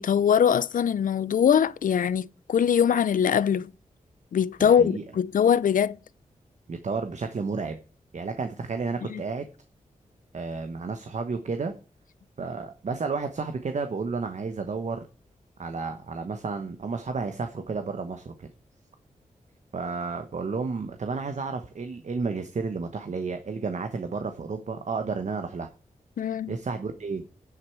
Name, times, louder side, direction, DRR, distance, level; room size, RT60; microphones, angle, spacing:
voice 1, 0.0-3.7 4.3-6.0 9.1-9.2 26.2-26.5, left 8 dB, 75° left, 0.5 m, -22 dB
voice 2, 4.6-5.0 6.7-7.8 8.1-9.5 10.3-11.7 12.4-15.1 15.6-18.5 19.7-25.7 26.5-27.2, right 4 dB, 60° right, 1.1 m, -32 dB
9.8 x 8.0 x 4.5 m
cardioid pair, 65°, 14 cm